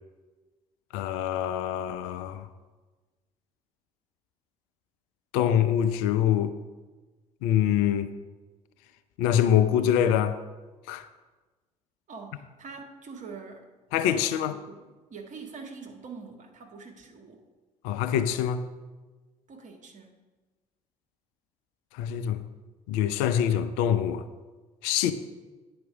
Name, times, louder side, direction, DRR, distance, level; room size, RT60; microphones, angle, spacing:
voice 1, 0.9-2.5 5.3-6.5 7.4-8.1 9.2-10.4 10.9-11.1 13.9-14.5 17.8-18.7 21.9-22.4 22.9-24.3 24.8-25.1, left 9 dB, 65° left, 0.5 m, -25 dB
voice 2, 12.1-13.7 14.1-17.4 19.5-20.1, right 4 dB, 40° right, 1.5 m, -44 dB
9.4 x 4.7 x 6.1 m
figure-of-eight pair, 50°, 18 cm